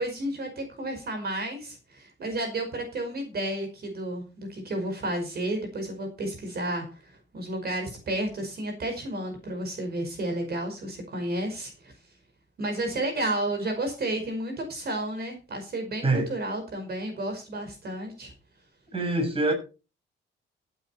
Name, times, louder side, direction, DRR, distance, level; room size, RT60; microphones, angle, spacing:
voice 1, 0.0-11.9 12.6-18.3, right 1 dB, 50° right, 5.2 m, -32 dB
voice 2, 18.9-19.5, right 2 dB, 30° right, 6.4 m, -24 dB
15.5 x 9.1 x 4.4 m
cardioid pair, 90°, 20 cm